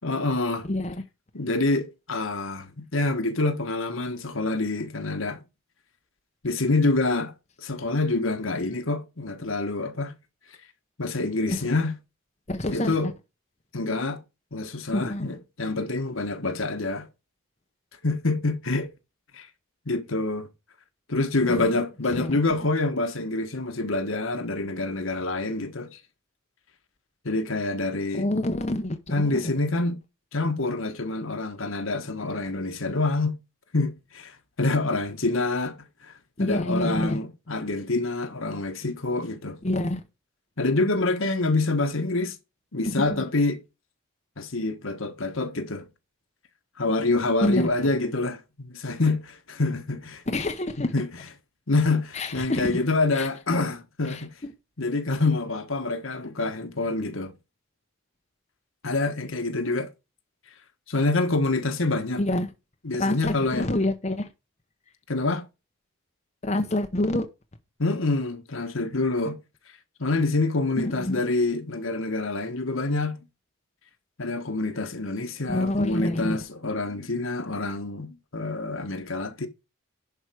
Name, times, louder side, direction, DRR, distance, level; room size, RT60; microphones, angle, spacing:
voice 1, 0.0-0.7 1.3-5.4 6.4-7.3 7.6-10.1 11.0-11.9 12.7-13.1 13.7-14.2 14.5-17.1 18.0-18.9 19.3-19.5 19.8-20.5 21.1-26.0 27.2-28.3 29.1-30.0 30.3-33.4 33.7-35.8 36.0-36.1 36.4-39.6 40.6-42.4 42.7-43.6 44.4-45.9 46.8-50.2 50.8-51.1 51.7-54.3 54.8-57.3 58.8-59.9 60.9-62.2 62.8-63.7 65.1-65.4 67.8-69.4 70.0-73.2 74.2-79.5, left 2 dB, 65° left, 1.4 m, -26 dB
voice 2, 0.7-1.0 11.5-11.6 12.5-12.9 14.9-15.3 21.5-21.7 22.2-22.4 28.1-29.5 36.4-37.2 39.6-40.0 42.9-43.2 47.4-47.7 50.3-50.9 52.1-52.8 53.2-53.3 54.1-54.2 62.2-62.5 63.0-64.3 66.4-67.3 70.9-71.2 75.5-76.4, left 1 dB, 30° left, 0.8 m, -27 dB
11.0 x 4.8 x 4.7 m
head